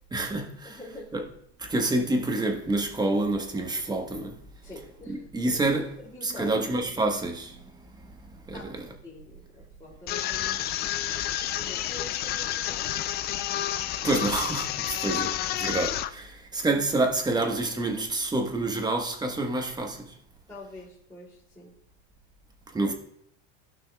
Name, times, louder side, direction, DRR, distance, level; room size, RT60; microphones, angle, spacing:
voice 1, 0.1-0.8 1.1-1.2 1.6-4.4 5.1-5.9 6.2-7.6 8.0-8.1 8.5-8.9 14.0-15.3 15.6-20.1 22.7-22.9, right 2 dB, 10° right, 1.2 m, -28 dB
voice 2, 0.6-1.2 4.6-5.3 5.7-6.7 8.5-8.7 9.0-11.3 11.5-12.9 15.0-15.2 20.5-21.7, left 2 dB, 10° left, 2.7 m, -45 dB
sound 1, 10.1-16.1, left 12 dB, 30° left, 0.4 m, -30 dB
15.0 x 5.9 x 2.3 m
supercardioid pair, 120°, 36 cm